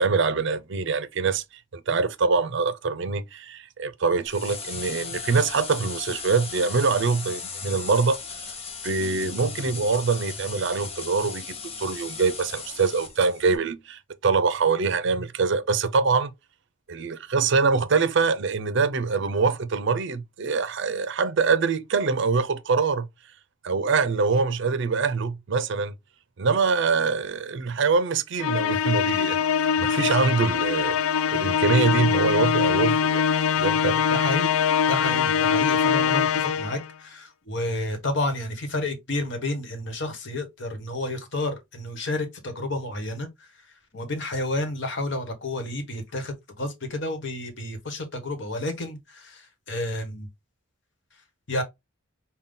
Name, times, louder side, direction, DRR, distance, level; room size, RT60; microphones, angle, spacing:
voice 1, 0.0-1.4 1.7-8.5 8.8-16.3 16.9-23.1 23.6-25.9 26.4-33.2 33.6-34.0, right 4 dB, 60° right, 0.5 m, -24 dB
sound 1, 4.3-13.6, left 5 dB, 30° left, 0.7 m, -37 dB
Musical instrument, 28.4-36.9, left 7 dB, 75° left, 0.3 m, -23 dB
voice 2, 34.1-34.5 34.9-43.5 43.9-50.3 51.5-51.6, left 1 dB, 60° left, 1.2 m, -30 dB
5.5 x 2.3 x 3.7 m
head